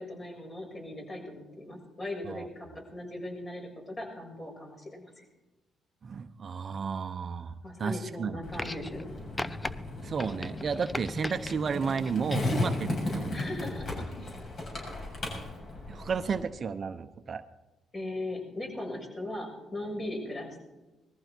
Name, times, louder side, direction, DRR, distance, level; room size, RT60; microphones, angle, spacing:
voice 1, 0.0-5.2 7.6-9.1 13.3-14.1 17.9-20.6, left 1 dB, 35° left, 0 dB, 6.8 m, -39 dB
voice 2, 6.0-7.5 7.8-8.4 10.0-13.4 15.9-17.4, right 6 dB, 45° right, 9 dB, 0.9 m, -32 dB
Skateboard, 8.4-16.4, left 2 dB, 50° left, 6.9 m, -35 dB
sound 1, 8.5-9.1 9.4-9.7 10.2-11.5 12.0-12.6 13.7-13.8, left 2 dB, 15° left, 0.7 m, -37 dB
20.5 x 14.5 x 4.6 m, 1.1 s
cardioid pair, 90°, 0 cm